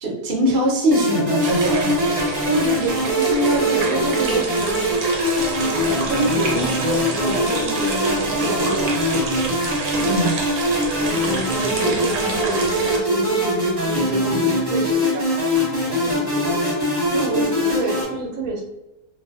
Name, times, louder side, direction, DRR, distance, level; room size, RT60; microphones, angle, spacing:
voice 1, 0.0-1.9 10.0-10.4 11.8-12.0, equal, 55° right, -2 dB, 0.6 m, -21 dB
sound 1, 0.9-18.0, equal, 30° right, 0.9 m, -22 dB
sound 2, 1.4-13.0, right 4 dB, 90° right, 1.2 m, -28 dB
voice 2, 2.4-5.0 5.6-9.3 10.9-16.6 17.1-18.6, right 2 dB, 70° right, -1 dB, 1.0 m, -27 dB
2.5 x 2.3 x 2.3 m, 0.97 s
omnidirectional pair, 1.7 m